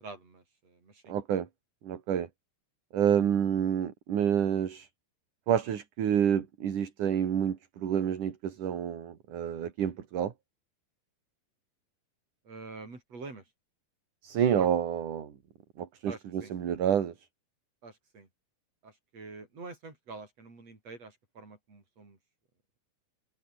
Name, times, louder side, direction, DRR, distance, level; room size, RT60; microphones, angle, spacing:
voice 1, 0.0-1.2 3.2-3.3 12.4-13.5 14.5-14.7 16.1-16.5 17.8-18.3 18.8-22.2, right 3 dB, 40° right, 7.8 m, -46 dB
voice 2, 1.1-1.5 1.8-2.3 2.9-4.9 5.5-10.3 14.2-15.4 15.8-17.1, right 9 dB, 60° right, 3.7 m, -28 dB
omnidirectional pair, 4.3 m